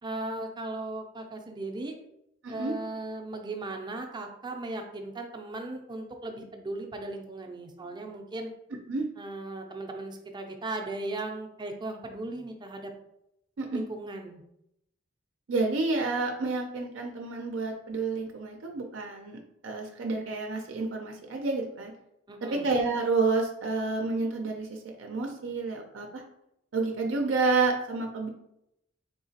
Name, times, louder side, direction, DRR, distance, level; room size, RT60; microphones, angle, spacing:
voice 1, 0.0-1.9 2.5-8.5 9.2-12.9 13.7-14.4 22.3-22.7, right 2 dB, 25° right, 4 dB, 0.5 m, -37 dB
voice 2, 2.4-2.7 8.9-9.1 13.6-13.8 15.5-21.9 22.5-26.2 26.7-28.3, right 3 dB, 80° right, 3 dB, 0.5 m, -29 dB
3.7 x 2.8 x 2.7 m, 0.80 s
head